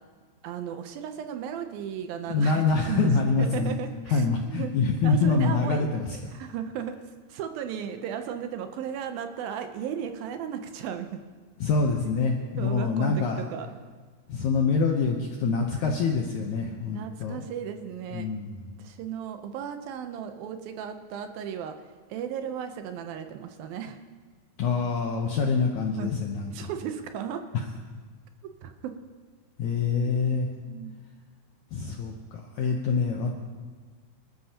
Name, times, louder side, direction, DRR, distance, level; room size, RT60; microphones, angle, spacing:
voice 1, 0.4-3.1 3.4-4.7 5.0-5.9 6.3-7.0 7.3-11.2 12.6-13.7 16.7-18.3 18.8-21.8 22.1-24.0 26.0-26.1 26.5-27.4 28.6-29.0 30.7-30.9, right 8 dB, 75° right, 7 dB, 2.4 m, -35 dB
voice 2, 2.3-3.7 4.1-6.2 11.6-13.5 14.3-17.4 18.1-18.7 24.6-26.7 27.5-27.6 29.6-30.5 31.7-33.3, left 4 dB, 75° left, 1 dB, 1.7 m, -25 dB
25.0 x 13.0 x 2.9 m, 1.4 s
omnidirectional pair, 4.6 m